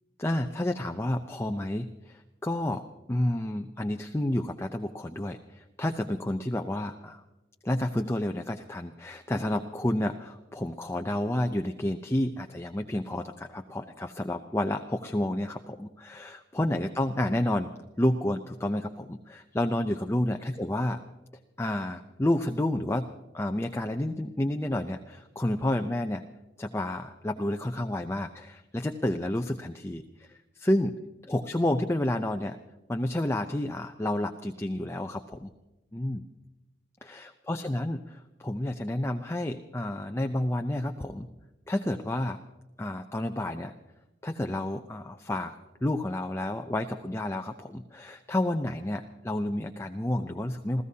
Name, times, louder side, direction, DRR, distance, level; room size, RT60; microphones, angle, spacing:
voice 1, 0.2-2.8 3.1-7.2 7.6-17.7 18.0-21.0 21.6-23.1 23.3-26.2 26.6-31.0 31.2-32.6 32.9-35.5 35.9-36.2 37.0-41.3 41.7-42.4 42.8-43.7 44.2-50.8, left 1 dB, 15° left, 5 dB, 0.5 m, -30 dB
28.5 x 15.5 x 2.8 m, 1.1 s
head